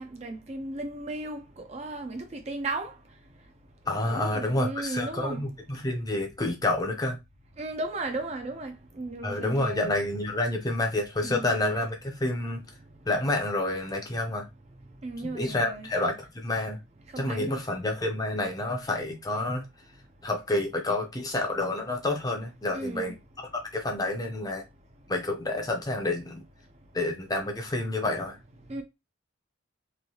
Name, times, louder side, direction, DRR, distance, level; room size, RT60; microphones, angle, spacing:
voice 1, 0.0-2.9 4.1-5.4 7.6-9.9 11.2-11.5 15.0-15.9 17.1-17.6 22.7-23.1 28.7-28.8, right 2 dB, 30° right, 0.4 m, -35 dB
voice 2, 3.9-7.2 9.2-12.6 13.1-14.4 15.2-16.8 17.2-19.6 20.2-24.6 25.1-26.4 26.9-28.4, left 2 dB, 20° left, 0.5 m, -29 dB
3.1 x 2.7 x 2.7 m
head